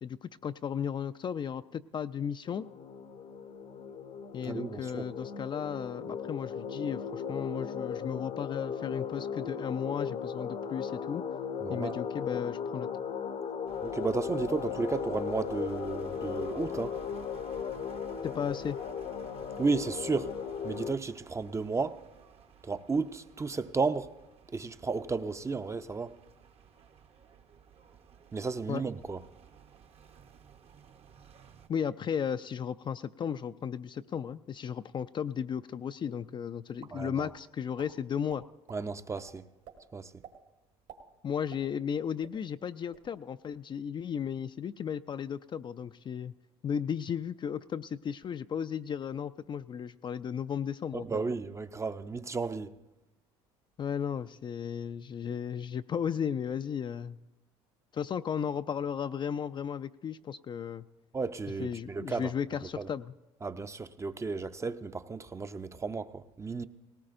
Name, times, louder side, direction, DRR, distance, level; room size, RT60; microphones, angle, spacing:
voice 1, 0.0-2.6 4.3-11.2 11.7-12.9 18.2-18.8 28.7-28.8 31.7-38.4 41.2-46.3 46.6-51.1 53.8-57.2 57.9-60.8 61.6-63.1, left 8 dB, 35° left, 0.4 m, -35 dB
sound 1, 2.5-20.9, left 7 dB, 55° left, 0.8 m, -37 dB
voice 2, 4.4-5.0 11.6-12.0 13.8-17.0 19.6-20.3 20.6-22.0 22.6-24.1 24.5-26.1 28.3-29.2 36.9-37.3 38.7-39.5 39.9-40.1 50.9-52.7 61.1-62.3 62.8-62.9 63.4-66.7, right 4 dB, 20° right, 0.6 m, -33 dB
sound 2, 13.7-31.7, right 7 dB, 45° right, 0.9 m, -55 dB
sound 3, 36.8-37.4 37.8-37.9 38.3-38.8 39.1-39.3 39.6-39.8 40.2-40.4 40.7-41.9 42.2-42.3 42.7-43.1, right 8 dB, 70° right, 2.1 m, -50 dB
18.5 x 17.5 x 2.6 m
hypercardioid pair, 75°, 14 cm